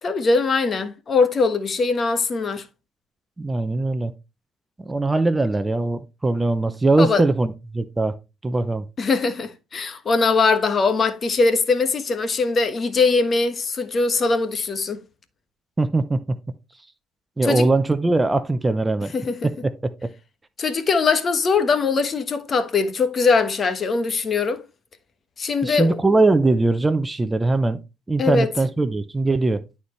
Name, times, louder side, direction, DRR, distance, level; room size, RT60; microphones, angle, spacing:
voice 1, 0.0-2.6 7.0-7.2 9.0-15.0 17.4-17.7 19.1-19.5 20.6-24.6 25.4-26.0 28.2-28.5, left 4 dB, 40° left, 1.2 m, -21 dB
voice 2, 3.4-4.1 4.8-8.1 8.4-8.9 15.8-16.4 17.4-19.1 19.4-19.9 25.6-27.8 28.1-29.6, right 2 dB, 15° right, 0.6 m, -21 dB
11.5 x 4.3 x 3.1 m
cardioid pair, 95°, 0 cm